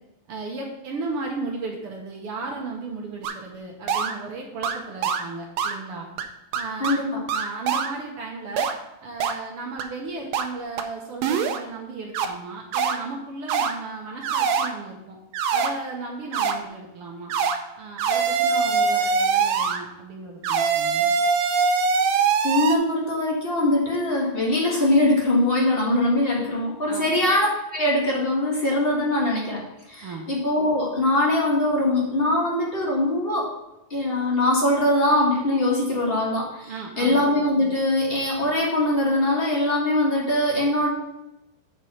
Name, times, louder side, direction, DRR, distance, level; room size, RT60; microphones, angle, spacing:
voice 1, 0.3-6.1 6.5-7.0 7.3-8.7 9.0-15.2 15.5-17.3 17.8-21.1 26.9-27.1 30.0-30.3 36.7-37.2, right 3 dB, 60° right, 0 dB, 1.5 m, -35 dB
sound 1, 3.2-3.3 3.9-4.1 4.6-4.8 5.0-5.2 5.6-5.7 6.2-6.3 6.5-7.0 7.3-7.9 8.6-8.7 9.2-9.3 9.8-9.9 10.3-10.4 10.8-10.9 11.2-11.6 12.1-12.2 12.7-13.0 13.5-13.7 14.2-14.7 15.3-15.7 16.3-16.5 17.3-17.6 18.0-19.8 20.4-22.7, right 5 dB, 85° right, 1.5 m, -22 dB
voice 2, 22.4-29.6 29.9-33.5 33.9-36.7 37.0-40.9, left 1 dB, 40° left, -4 dB, 0.8 m, -22 dB
8.3 x 4.9 x 5.8 m, 0.91 s
omnidirectional pair, 4.1 m